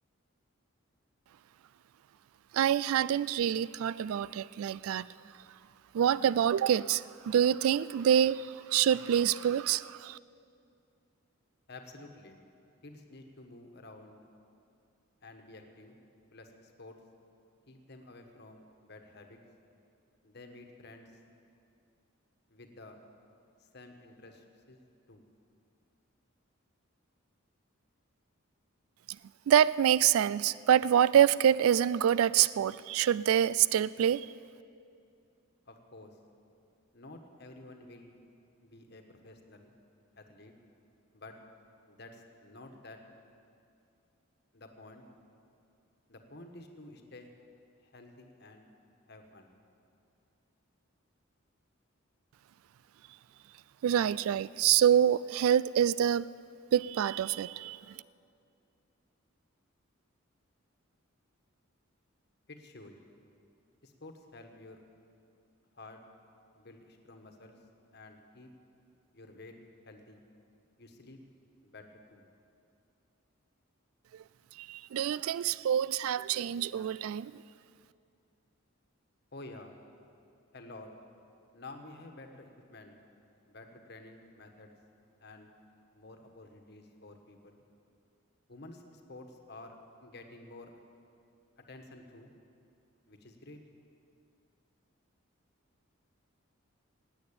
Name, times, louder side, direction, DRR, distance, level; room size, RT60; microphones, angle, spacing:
voice 1, 2.5-5.1 5.9-10.2 29.5-34.3 53.8-56.3 56.7-58.0 74.6-77.4, right 9 dB, 85° right, 0.3 m, -26 dB
voice 2, 11.7-12.4 12.8-14.2 15.2-16.0 16.3-17.0 17.7-19.4 20.2-21.1 22.5-23.0 23.6-24.8 25.1-25.2 35.7-36.2 36.9-38.2 38.6-39.7 40.2-40.5 41.1-41.3 41.9-43.0 44.5-45.0 46.1-47.3 47.8-48.7 49.1-49.5 62.5-62.9 63.8-64.8 65.7-66.0 66.5-67.6 67.9-68.5 69.1-69.5 69.8-70.2 70.8-71.2 71.6-72.2 79.3-79.7 80.5-80.9 81.5-82.9 83.5-84.8 85.2-85.5 85.9-87.6 88.5-89.7 90.0-90.7 91.7-92.3 93.1-93.6, left 2 dB, 50° left, 1.4 m, -51 dB
16.5 x 9.3 x 8.8 m
head